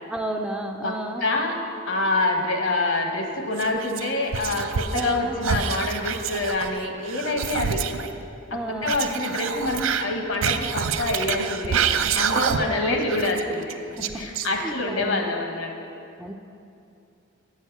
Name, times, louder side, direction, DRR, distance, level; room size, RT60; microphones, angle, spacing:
voice 1, 0.1-1.3 4.9-5.4 8.5-9.0 12.6-13.0 14.0-14.1 14.6-15.3 16.2-16.3, right 1 dB, 5° right, 3 dB, 0.4 m, -31 dB
voice 2, 0.8-1.6 1.9-7.8 8.5-11.8 12.1-13.7 14.1-15.7, left 2 dB, 70° left, 3 dB, 1.2 m, -26 dB
Whispering, 3.6-5.2 5.4-8.1 8.8-12.8 13.1-14.9, right 7 dB, 80° right, 0.5 m, -27 dB
8.0 x 6.4 x 8.0 m, 2.7 s
head